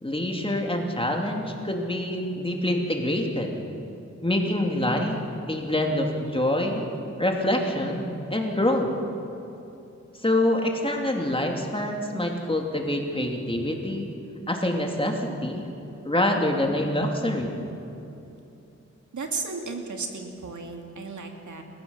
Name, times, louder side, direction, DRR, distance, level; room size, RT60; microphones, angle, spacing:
voice 1, 0.0-3.6 4.2-5.2 5.5-6.9 7.2-8.9 10.2-14.1 14.5-15.6 16.0-17.6, left 1 dB, 20° left, 1 dB, 3.2 m, -26 dB
voice 2, 19.1-21.6, right 4 dB, 85° right, 2 dB, 2.6 m, -34 dB
29.5 x 15.5 x 7.4 m, 2.8 s
wide cardioid pair, 70°, 29 cm